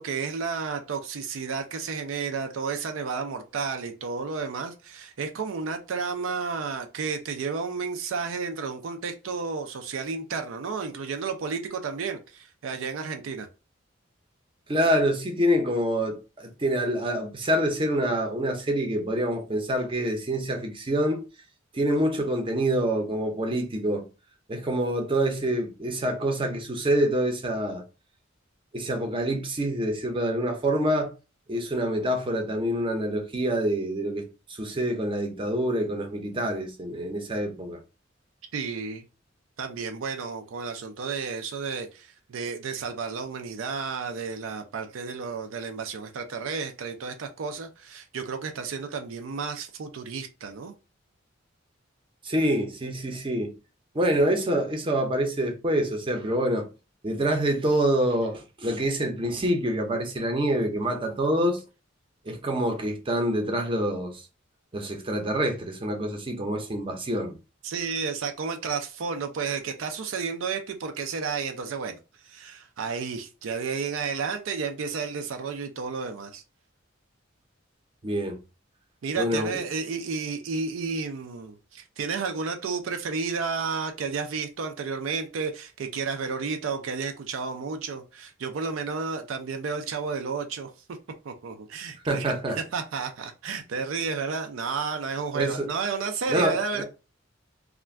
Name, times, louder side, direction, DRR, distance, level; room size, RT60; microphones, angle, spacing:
voice 1, 0.0-13.5 38.5-39.0 39.6-50.7 67.6-72.0 72.2-76.4 79.0-90.7 91.2-96.8, right 5 dB, 80° right, 0.4 m, -32 dB
voice 2, 14.7-21.2 21.7-24.0 24.5-27.8 28.7-31.1 31.5-37.8 52.2-53.5 53.9-56.7 57.0-61.6 62.3-64.2 64.7-67.4 78.0-78.4 79.2-79.6 92.1-92.6 95.3-95.7 96.3-96.8, right 1 dB, 25° right, 0.6 m, -26 dB
2.4 x 2.2 x 3.2 m
head